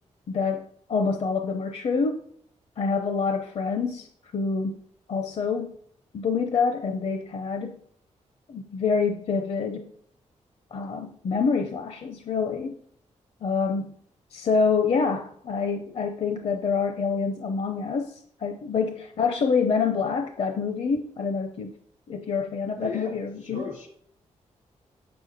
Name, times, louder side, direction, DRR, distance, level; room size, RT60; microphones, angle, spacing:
voice 1, 0.3-2.2 2.8-4.1 4.3-4.8 5.1-5.7 6.1-7.8 8.5-9.9 10.7-12.8 13.4-13.9 14.3-21.7 22.1-23.6, left 5 dB, 55° left, 6 dB, 0.7 m, -26 dB
voice 2, 22.8-23.9, left 3 dB, 90° left, 1 dB, 3.0 m, -37 dB
7.9 x 6.8 x 4.1 m, 0.64 s
wide cardioid pair, 155°, 12 cm